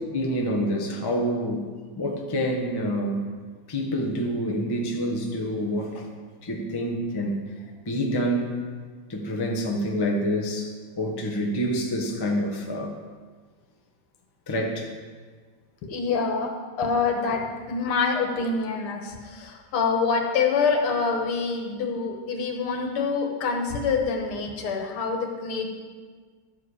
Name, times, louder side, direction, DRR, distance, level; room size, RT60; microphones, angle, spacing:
voice 1, 0.1-1.7 2.0-3.2 3.7-6.1 6.4-7.4 7.8-8.6 9.1-10.7 11.0-13.0 14.5-14.9, equal, 20° left, 1 dB, 0.7 m, -27 dB
voice 2, 15.8-16.5 16.8-25.7, left 5 dB, 85° left, 3 dB, 2.1 m, -26 dB
12.5 x 7.7 x 4.9 m, 1.5 s
omnidirectional pair, 2.3 m